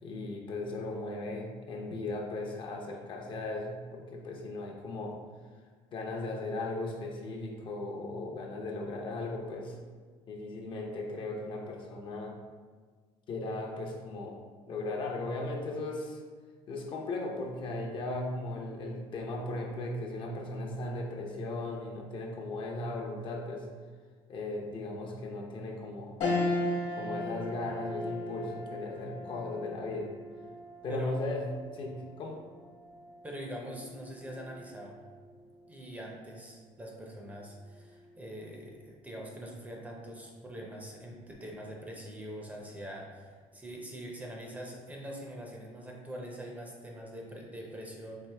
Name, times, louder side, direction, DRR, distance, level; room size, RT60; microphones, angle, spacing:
voice 1, 0.0-5.2 5.9-9.8 10.3-12.4 13.3-14.4 14.7-16.2 16.7-23.7 24.3-26.2 26.9-30.1 30.8-32.4, left 2 dB, 45° left, 0 dB, 0.7 m, -37 dB
sound 1, 26.2-35.8 36.3-36.4 37.7-38.2, left 1 dB, 80° left, 1.1 m, -37 dB
voice 2, 33.2-35.0 35.7-48.2, equal, 10° right, -1 dB, 0.6 m, -43 dB
4.5 x 2.6 x 3.3 m, 1.5 s
cardioid pair, 130°, 12 cm